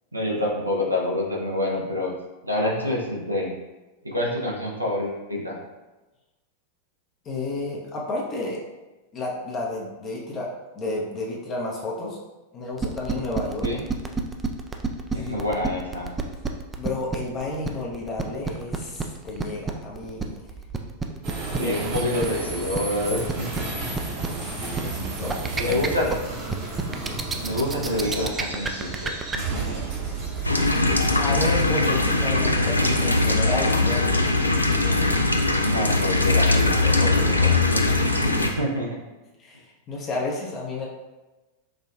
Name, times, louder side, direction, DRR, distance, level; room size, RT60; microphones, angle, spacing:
voice 1, 0.1-2.1 2.4-3.5 4.0-5.6 13.6-13.8 15.1-16.1 21.6-23.7 24.7-24.8 25.6-26.1 27.4-29.8 35.6-38.1 38.4-39.0, left 1 dB, 85° right, -2 dB, 0.7 m, -27 dB
voice 2, 7.2-8.6 9.1-10.5 10.7-12.2 12.5-13.7 15.1-15.4 16.8-20.4 21.5-22.0 24.8-25.8 31.1-34.1 39.4-40.9, left 2 dB, 30° left, -3 dB, 0.6 m, -31 dB
sound 1, 12.8-29.4, right 5 dB, 15° right, 0.3 m, -29 dB
sound 2, 21.2-34.6, right 3 dB, 40° right, 0.9 m, -33 dB
sound 3, 30.4-38.5, left 2 dB, 85° left, 0.3 m, -21 dB
4.8 x 2.3 x 2.3 m, 1.1 s
figure-of-eight pair, 90°, 0 cm